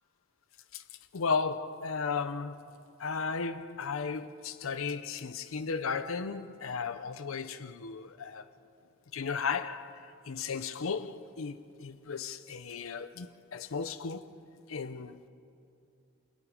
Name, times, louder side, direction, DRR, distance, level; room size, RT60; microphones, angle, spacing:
voice 1, 1.1-8.4 9.1-14.3 14.7-15.3, left 5 dB, 80° left, 0.6 m, -35 dB
28.5 x 18.5 x 4.9 m
head